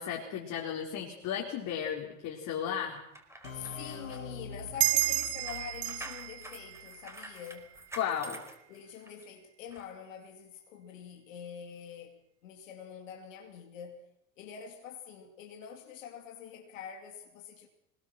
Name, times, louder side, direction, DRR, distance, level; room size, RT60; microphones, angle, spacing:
voice 1, 0.0-3.0 8.0-8.4, left 8 dB, 50° left, 4.3 m, -34 dB
sound 1, 3.0-9.2 9.7-9.9, right 1 dB, 5° right, 4.6 m, -49 dB
sound 2, 3.4-7.0, left 3 dB, 90° left, 2.8 m, -45 dB
voice 2, 3.5-7.8 8.7-14.1 14.4-17.7, left 8 dB, 70° left, 2.9 m, -45 dB
sound 3, 4.8-7.9, right 18 dB, 55° right, 1.5 m, -32 dB
24.5 x 21.0 x 6.1 m
hypercardioid pair, 80°, 40 cm